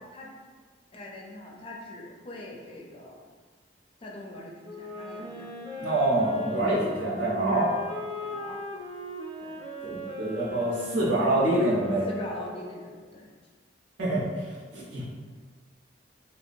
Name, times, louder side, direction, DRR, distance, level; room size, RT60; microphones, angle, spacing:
voice 1, 0.9-3.2 4.0-5.5 6.5-6.7 7.5-7.8 8.2-8.6 9.4-9.6 10.5-10.7 12.1-13.3, left 1 dB, 30° left, -2 dB, 0.4 m, -43 dB
Wind instrument woodwind instrument, 4.6-12.9, left 1 dB, 25° right, 0.5 m, -39 dB
voice 2, 5.8-7.7 9.8-12.1 14.0-15.0, right 1 dB, 90° right, -7 dB, 0.9 m, -26 dB
2.7 x 2.2 x 2.5 m, 1.5 s
head